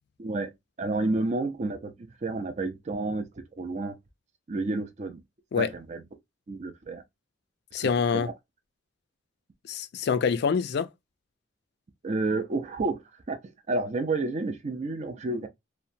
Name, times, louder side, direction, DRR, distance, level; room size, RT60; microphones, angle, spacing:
voice 1, 0.2-4.0 4.5-5.2 5.6-6.0 6.5-7.0 7.8-8.3 12.0-13.0 13.3-15.5, right 3 dB, 35° right, 0.4 m, -30 dB
voice 2, 7.7-8.3 9.7-10.9, left 6 dB, 60° left, 0.3 m, -26 dB
2.7 x 2.1 x 2.5 m
head